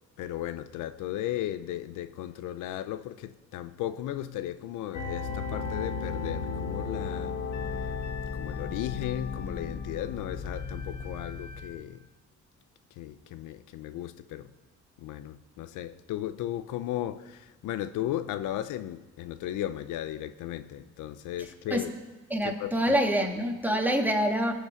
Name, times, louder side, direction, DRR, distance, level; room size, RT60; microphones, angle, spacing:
voice 1, 0.2-7.4 8.3-12.0 13.0-14.5 15.0-21.9 22.4-23.0, left 12 dB, 90° left, 0.6 m, -35 dB
sound 1, 4.9-11.7, left 4 dB, 65° left, 1.5 m, -35 dB
voice 2, 22.3-24.5, equal, 5° right, 2.0 m, -26 dB
20.0 x 7.0 x 5.1 m
cardioid pair, 90°, 30 cm